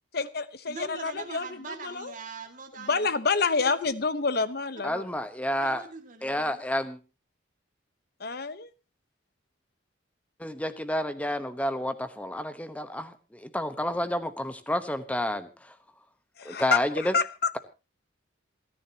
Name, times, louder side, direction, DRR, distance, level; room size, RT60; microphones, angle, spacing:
voice 1, 0.1-2.1 2.8-5.1 8.2-8.7 16.4-17.5, left 4 dB, 50° left, 14 dB, 1.0 m, -28 dB
voice 2, 0.7-3.1 3.6-3.7 5.6-6.6, right 4 dB, 40° right, 4 dB, 2.1 m, -42 dB
voice 3, 4.8-5.8 6.2-7.0 10.4-15.7 16.4-17.1, left 1 dB, 5° left, 11 dB, 1.0 m, -30 dB
27.5 x 10.0 x 2.9 m, 0.30 s
head